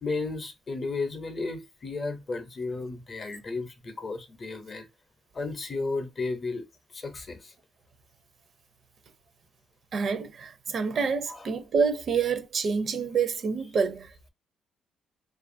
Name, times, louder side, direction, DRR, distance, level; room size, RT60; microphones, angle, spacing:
voice 1, 0.0-4.9 5.3-6.6 6.9-7.5 11.3-11.5, left 3 dB, 40° left, 0.6 m, -33 dB
voice 2, 9.9-14.3, right 5 dB, 55° right, 0.5 m, -27 dB
2.6 x 2.4 x 2.5 m
cardioid pair, 90°, 0 cm